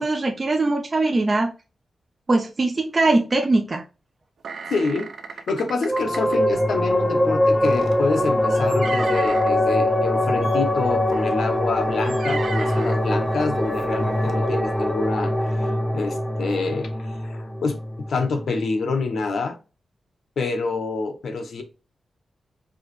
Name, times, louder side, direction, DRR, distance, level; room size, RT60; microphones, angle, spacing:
voice 1, 0.0-1.5 2.3-3.8, right 2 dB, 30° right, 0.6 m, -21 dB
sound 1, 4.4-6.4 7.6-9.5 10.4-10.6 11.1-11.3 12.0-13.0 13.8-13.9 14.2-14.3, right 5 dB, 85° right, 0.7 m, -35 dB
voice 2, 4.7-15.3 15.6-19.6 20.4-21.6, left 4 dB, 80° left, 1.0 m, -27 dB
sound 2, 5.9-18.7, left 1 dB, 10° left, 0.6 m, -23 dB
4.7 x 3.0 x 3.2 m
wide cardioid pair, 125°, 0 cm